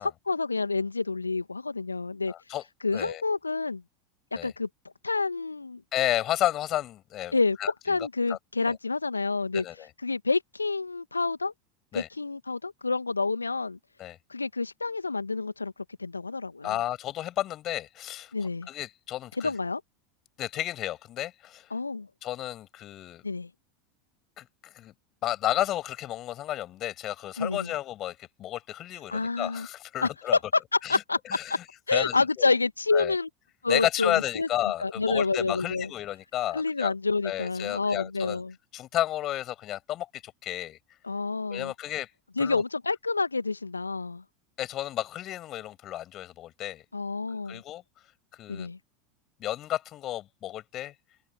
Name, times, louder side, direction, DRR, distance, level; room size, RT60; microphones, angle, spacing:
voice 1, 0.0-2.3 2.8-3.8 4.4-4.7 5.0-5.8 7.3-9.6 10.0-11.5 11.9-13.8 14.3-15.7 16.0-16.8 18.3-18.7 19.4-19.8 21.7-22.1 23.2-23.5 27.4-27.7 29.1-29.7 30.0-30.1 30.7-31.2 31.9-33.3 33.6-34.5 34.8-35.9 36.5-38.5 41.0-41.7 42.4-44.2 46.9-47.6 48.5-48.8, left 3 dB, 85° left, 1.5 m, -28 dB
voice 2, 2.3-2.6 2.9-3.2 4.4-4.5 5.9-7.7 8.3-8.4 8.7-8.8 9.5-9.9 11.9-12.1 14.0-14.2 16.6-19.5 20.4-21.7 22.2-23.3 24.4-24.9 25.2-30.4 30.8-31.6 31.9-32.5 32.9-33.1 33.7-36.9 37.2-38.4 38.7-40.8 41.5-42.1 42.4-42.6 44.6-46.8 47.3-47.8 48.3-48.7 49.4-50.9, left 13 dB, 35° left, 7.0 m, -32 dB
open air
figure-of-eight pair, 85°, 0 cm